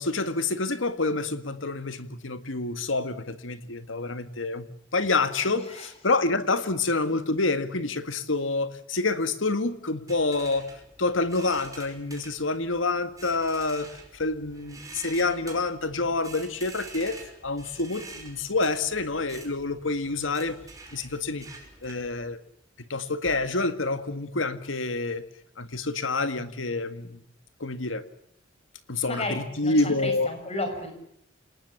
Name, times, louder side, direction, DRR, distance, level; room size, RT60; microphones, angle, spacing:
voice 1, 0.0-10.7 11.0-13.9 14.1-17.2 17.4-20.6 20.9-21.5 21.8-22.4 22.8-25.2 25.6-27.2 27.6-28.0 28.9-30.3, left 3 dB, 80° left, 11 dB, 1.9 m, -27 dB
sound 1, 10.1-22.3, right 3 dB, 20° right, 5.8 m, -47 dB
voice 2, 29.1-30.9, left 2 dB, 35° left, 6 dB, 6.9 m, -33 dB
28.0 x 19.5 x 7.3 m, 0.78 s
head